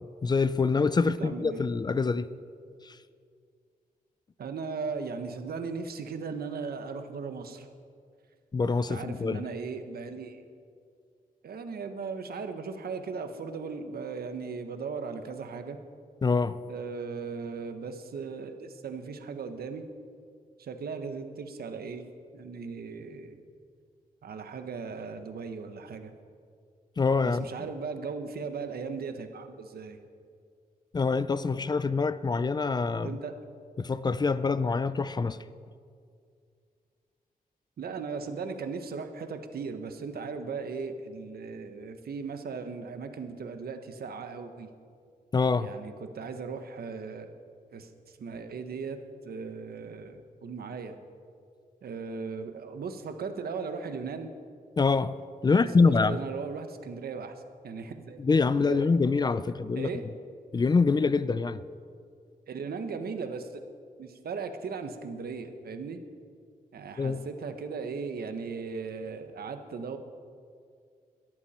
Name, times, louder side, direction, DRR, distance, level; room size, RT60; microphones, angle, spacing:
voice 1, 0.2-2.2 2.8-3.0 8.5-9.4 16.2-16.6 27.0-27.5 30.9-33.2 33.8-35.4 45.3-45.7 54.8-55.1 55.4-56.2 58.2-59.9 60.5-61.6 67.0-67.2, left 4 dB, 25° left, 15 dB, 0.4 m, -25 dB
voice 2, 1.0-1.6 4.4-7.7 8.9-10.4 11.4-15.8 16.7-19.8 20.6-22.1 22.3-23.4 24.2-26.1 27.2-30.0 33.0-33.3 37.8-44.7 45.6-47.3 47.7-49.0 49.2-51.0 51.8-54.3 55.4-58.2 58.6-58.9 59.7-60.0 62.5-63.6 64.0-66.0 66.7-70.0, right 5 dB, 85° right, 7 dB, 1.3 m, -37 dB
21.5 x 14.0 x 4.4 m, 2.2 s
wide cardioid pair, 175°, 15 cm